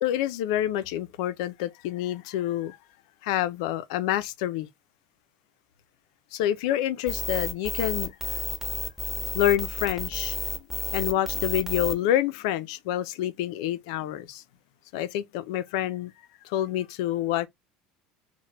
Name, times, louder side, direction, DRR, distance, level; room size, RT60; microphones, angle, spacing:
voice 1, 0.0-2.8 3.2-4.7 6.3-8.1 9.3-10.7 10.9-14.4 14.9-16.1 16.4-17.5, left 12 dB, 80° left, 0.4 m, -27 dB
sound 1, 7.1-11.9, left 2 dB, 5° right, 0.8 m, -31 dB
2.9 x 2.1 x 3.1 m
supercardioid pair, 125°, 3 cm